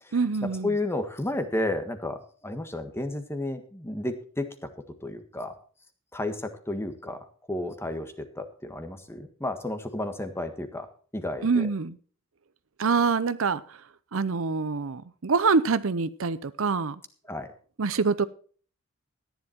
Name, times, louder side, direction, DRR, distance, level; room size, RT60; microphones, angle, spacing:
voice 1, 0.1-0.8 11.4-12.0 12.8-13.8 14.1-17.0 17.8-18.3, right 4 dB, 70° right, 0.7 m, -25 dB
voice 2, 0.6-4.5 5.0-5.5 6.1-7.2 7.5-10.9 11.1-11.7 17.3-17.5, left 1 dB, 10° left, 1.5 m, -32 dB
14.0 x 10.5 x 4.4 m
head